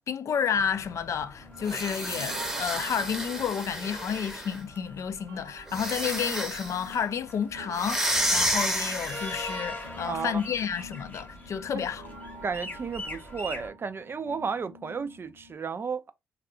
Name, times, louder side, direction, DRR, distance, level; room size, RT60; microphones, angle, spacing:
voice 1, 0.1-12.1, left 7 dB, 45° left, 0.4 m, -31 dB
sound 1, 0.5-13.7, left 1 dB, 25° left, 0.9 m, -43 dB
sound 2, 1.4-15.5, right 1 dB, 70° right, 0.8 m, -47 dB
sound 3, 1.6-4.6 5.7-6.8 7.7-9.5, equal, 5° right, 0.8 m, -30 dB
voice 2, 10.1-10.4 11.7-11.9 12.4-16.1, right 5 dB, 35° right, 0.4 m, -33 dB
3.4 x 2.3 x 2.4 m
figure-of-eight pair, 40°, 7 cm